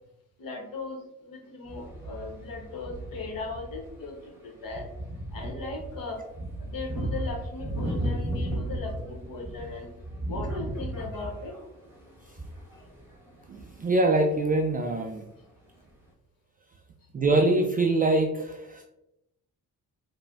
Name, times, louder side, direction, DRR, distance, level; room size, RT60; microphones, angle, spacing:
voice 1, 0.4-1.0 1.2-4.2 4.4-4.9 5.3-6.2 6.6-9.9 10.3-11.5, left 3 dB, 50° left, 1 dB, 1.1 m, -38 dB
sound 1, 1.7-4.2 4.5-14.5 14.8-14.9 15.9-16.0, right 1 dB, 5° right, 1.4 m, -35 dB
voice 2, 13.5-15.2 17.1-18.8, right 2 dB, 20° right, 2 dB, 0.3 m, -24 dB
4.6 x 2.2 x 2.5 m, 0.89 s
hypercardioid pair, 45°, 44 cm